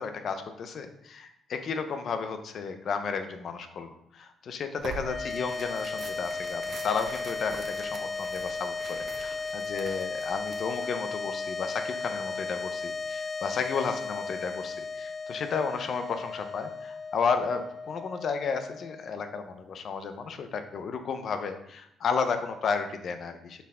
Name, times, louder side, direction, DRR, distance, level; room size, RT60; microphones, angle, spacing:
voice 1, 0.0-23.6, left 5 dB, 60° left, 8 dB, 0.8 m, -33 dB
Tearing, 4.8-11.0, right 4 dB, 60° right, 0.8 m, -45 dB
sound 1, 5.0-19.4, left 4 dB, 30° left, 0.4 m, -35 dB
7.0 x 4.8 x 3.6 m, 0.76 s
cardioid pair, 90°, 0 cm